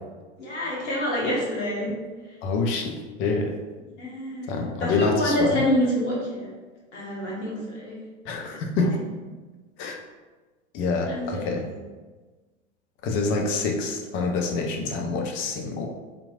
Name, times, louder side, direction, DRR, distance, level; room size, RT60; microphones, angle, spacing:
voice 1, 0.4-1.9 2.3-2.4 4.0-6.5 6.9-8.0 8.4-8.6 11.1-11.8, equal, 70° left, -4 dB, 1.4 m, -27 dB
voice 2, 2.4-3.5 4.5-5.6 8.2-9.0 9.8-10.0 10.7-11.6 13.0-15.9, left 3 dB, 35° left, 3 dB, 0.6 m, -26 dB
3.6 x 3.0 x 2.4 m, 1.3 s
figure-of-eight pair, 90°, 36 cm